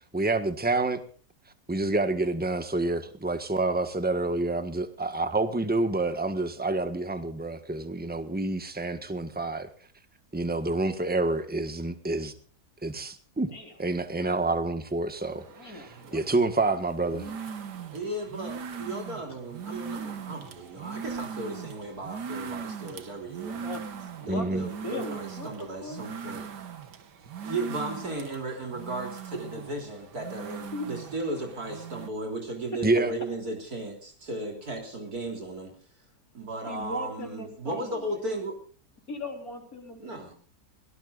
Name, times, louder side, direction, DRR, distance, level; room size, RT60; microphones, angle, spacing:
voice 1, 0.1-1.0 1.7-9.7 10.3-12.3 12.8-13.5 13.8-17.3 24.3-24.7 32.8-33.1, right 2 dB, 5° right, 8 dB, 1.4 m, -28 dB
sound 1, 15.2-32.1, right 7 dB, 85° right, 2.0 m, -40 dB
voice 2, 15.5-16.2 16.7-17.4 23.5-26.0 28.3-28.4 30.7-30.9 36.7-38.3 39.1-40.3, left 2 dB, 60° left, 2 dB, 4.5 m, -40 dB
voice 3, 17.9-23.7 24.2-26.5 27.4-35.7 36.3-38.6 40.0-40.3, right 2 dB, 65° right, 2 dB, 4.0 m, -35 dB
24.0 x 18.0 x 2.6 m, 0.42 s
omnidirectional pair, 1.7 m